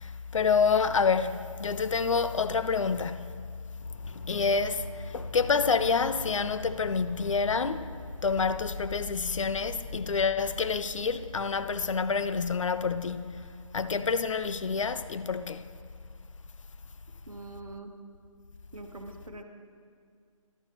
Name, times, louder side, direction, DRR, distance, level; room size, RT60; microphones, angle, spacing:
voice 1, 0.0-3.3 4.1-7.9 8.2-13.5 13.7-15.7, left 5 dB, 65° left, 0.4 m, -28 dB
sound 1, 3.8-10.5, left 2 dB, 25° left, 0.6 m, -43 dB
voice 2, 17.3-17.9 18.7-19.4, right 2 dB, 90° right, 1.1 m, -43 dB
12.0 x 10.0 x 3.0 m
figure-of-eight pair, 160°, 18 cm